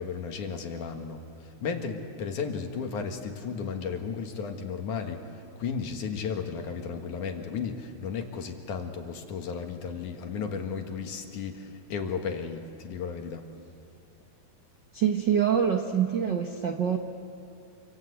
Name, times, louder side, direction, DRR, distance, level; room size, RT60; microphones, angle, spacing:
voice 1, 0.0-13.5, left 6 dB, 65° left, 4 dB, 3.0 m, -34 dB
voice 2, 14.9-17.0, right 8 dB, 85° right, 3 dB, 0.9 m, -25 dB
27.5 x 26.0 x 8.3 m, 2.5 s
omnidirectional pair, 4.1 m